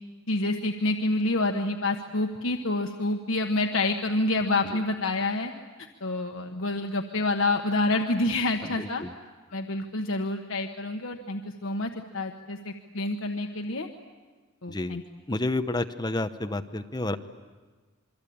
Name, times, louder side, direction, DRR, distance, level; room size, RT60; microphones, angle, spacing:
voice 1, 0.3-5.5 6.0-9.0 9.5-13.9 14.6-15.0, left 2 dB, 80° left, 3 dB, 1.3 m, -28 dB
voice 2, 8.6-9.1 14.7-15.0 15.3-17.2, left 2 dB, 20° left, 9 dB, 0.9 m, -30 dB
26.5 x 24.0 x 8.6 m, 1.3 s
head